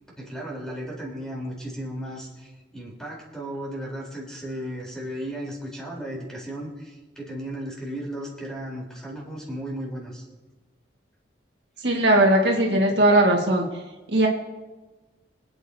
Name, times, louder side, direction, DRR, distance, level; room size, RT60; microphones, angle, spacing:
voice 1, 0.2-10.3, right 1 dB, 5° left, -3 dB, 3.7 m, -35 dB
voice 2, 11.8-13.7 14.1-14.3, right 1 dB, 65° right, -1 dB, 1.8 m, -19 dB
25.5 x 8.9 x 2.8 m, 1.2 s
head